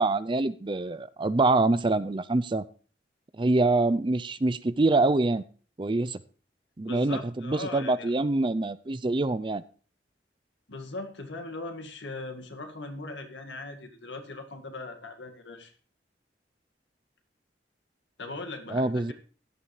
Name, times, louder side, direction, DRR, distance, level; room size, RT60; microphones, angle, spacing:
voice 1, 0.0-2.6 3.4-5.4 5.8-6.2 6.8-9.6 18.7-19.1, right 2 dB, 25° right, 14 dB, 0.5 m, -25 dB
voice 2, 6.9-8.1 10.7-15.7 18.2-19.1, left 2 dB, 90° left, 5 dB, 2.0 m, -39 dB
16.5 x 11.5 x 3.3 m, 0.38 s
head